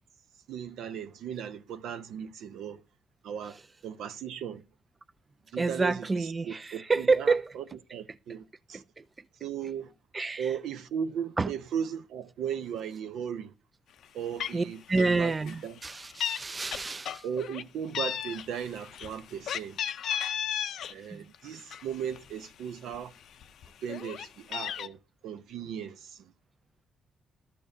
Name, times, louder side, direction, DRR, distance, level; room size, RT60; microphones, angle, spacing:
voice 1, 0.5-2.8 3.2-3.6 3.8-4.6 5.5-5.9 6.4-7.6 7.9-8.8 9.4-9.9 10.4-13.5 14.1-15.7 17.2-19.8 20.9-23.1 23.8-25.0 25.2-26.2, right 8 dB, 80° right, 0.7 m, -36 dB
voice 2, 5.5-7.6 8.1-8.2 8.7-9.0 10.1-10.5 11.4-11.5 14.5-17.3 21.1-21.3, right 3 dB, 25° right, 0.4 m, -29 dB
Meow, 14.0-14.1 14.4-14.7 14.9-15.2 15.5-16.4 16.7-17.6 17.9-20.9 21.3-22.5 22.9-23.0 23.3-24.9, left 9 dB, 70° left, 0.5 m, -34 dB
13.0 x 6.9 x 2.7 m
cardioid pair, 90°, 0 cm